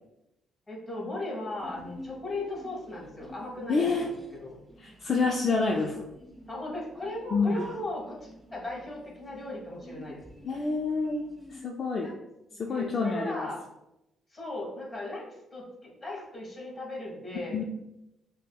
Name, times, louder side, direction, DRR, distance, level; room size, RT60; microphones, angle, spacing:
voice 1, 0.7-4.1 4.4-4.6 6.5-10.2 12.0-12.1 12.5-13.6 14.3-15.2 15.5-17.6, left 2 dB, 20° left, -3 dB, 1.4 m, -37 dB
Sneeze, 1.6-11.6, right 1 dB, 5° right, 0.5 m, -48 dB
voice 2, 3.7-4.0 4.8-5.9 7.3-7.6 10.4-12.1 12.6-13.5 17.5-17.6, left 4 dB, 45° left, 0 dB, 0.4 m, -28 dB
5.5 x 2.0 x 2.2 m, 0.90 s
cardioid pair, 90°, 0 cm